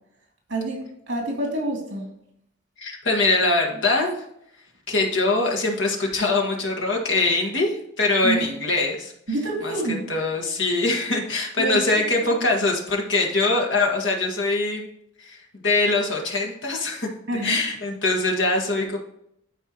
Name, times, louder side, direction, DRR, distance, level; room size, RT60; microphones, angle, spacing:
voice 1, 0.5-2.1 8.2-8.5 9.3-10.1 11.6-12.3 17.3-17.6, right 2 dB, 60° right, 0 dB, 2.7 m, -28 dB
voice 2, 2.8-4.1 4.9-9.1 9.6-9.7 10.1-14.9 15.2-17.1 17.4-19.0, left 2 dB, 70° left, -1 dB, 1.7 m, -23 dB
12.5 x 4.6 x 3.0 m, 0.75 s
head